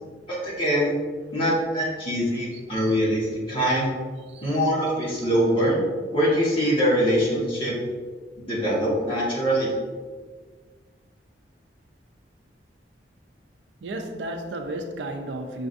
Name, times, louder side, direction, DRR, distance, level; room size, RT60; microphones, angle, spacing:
voice 1, 0.3-0.9 1.3-3.9 4.4-7.7 8.4-9.8, equal, 30° left, 1.3 m, -23 dB
voice 2, 4.3-4.6 13.8-15.7, right 1 dB, 90° right, 0.4 m, -33 dB
6.0 x 2.5 x 2.5 m
head